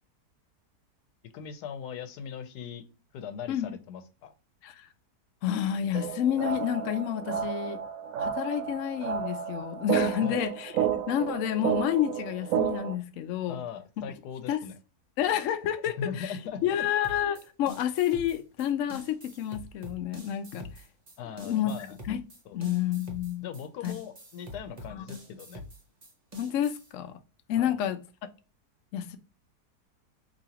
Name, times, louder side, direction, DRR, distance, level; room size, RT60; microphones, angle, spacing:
voice 1, 1.3-2.8 3.1-4.3 10.2-10.4 13.5-14.7 16.0-16.9 21.2-21.9 22.5-22.6 23.4-25.6 27.6-27.7, left 7 dB, 90° left, 1.2 m, -39 dB
voice 2, 5.4-7.8 8.2-13.6 14.5-14.6 15.2-16.4 16.6-20.7 21.4-21.7 22.0-22.2 22.5-23.5 23.8-23.9 25.0-25.1 26.4-27.2 27.5-28.0 28.9-29.2, left 10 dB, 70° left, 0.8 m, -29 dB
sound 1, 5.9-12.9, right 9 dB, 70° right, 0.9 m, -31 dB
sound 2, 17.0-26.9, left 1 dB, 30° right, 0.8 m, -45 dB
5.0 x 2.7 x 2.9 m
omnidirectional pair, 1.7 m